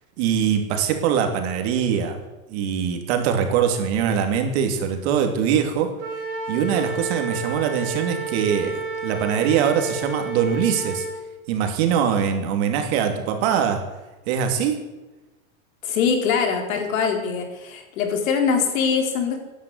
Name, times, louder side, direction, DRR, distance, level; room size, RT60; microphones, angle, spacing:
voice 1, 0.2-2.2 2.5-5.9 6.5-11.1 11.5-13.8 14.3-14.8, right 8 dB, 50° right, 5 dB, 3.0 m, -22 dB
Wind instrument woodwind instrument, 6.0-11.1, right 3 dB, 30° right, 5.4 m, -30 dB
voice 2, 15.8-19.4, left 6 dB, 80° left, 4 dB, 4.2 m, -23 dB
17.0 x 10.5 x 8.1 m, 1.1 s
supercardioid pair, 170°, 41 cm